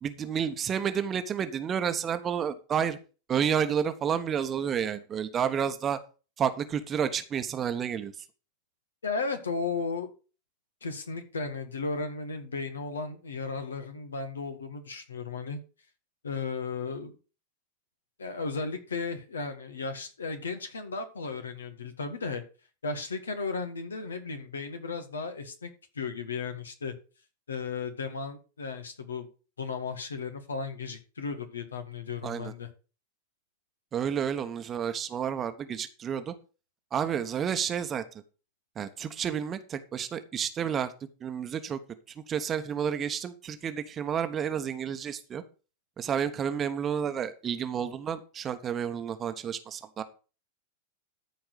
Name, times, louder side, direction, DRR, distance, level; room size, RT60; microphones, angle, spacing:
voice 1, 0.0-3.0 3.3-6.0 6.4-8.1 32.2-32.5 33.9-36.3 36.9-38.0 38.8-40.9 41.2-41.8 42.3-45.4 46.0-50.0, right 8 dB, 25° right, 9 dB, 1.2 m, -30 dB
voice 2, 9.0-10.1 10.8-15.6 16.2-17.2 18.2-22.4 22.8-25.7 26.0-26.9 27.5-29.3 29.6-32.7, left 4 dB, 70° left, 8 dB, 1.9 m, -35 dB
14.0 x 4.7 x 6.5 m, 0.35 s
figure-of-eight pair, 90°, 0 cm